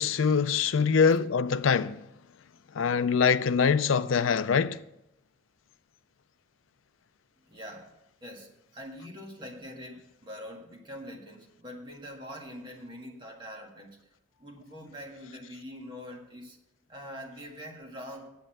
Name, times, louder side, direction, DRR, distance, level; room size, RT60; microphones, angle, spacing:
voice 1, 0.0-2.0 2.7-4.8, left 6 dB, 85° left, 0.4 m, -24 dB
voice 2, 7.4-7.9 8.2-14.0 14.4-16.6 16.9-18.3, equal, 25° right, 1.7 m, -44 dB
8.0 x 8.0 x 7.7 m
head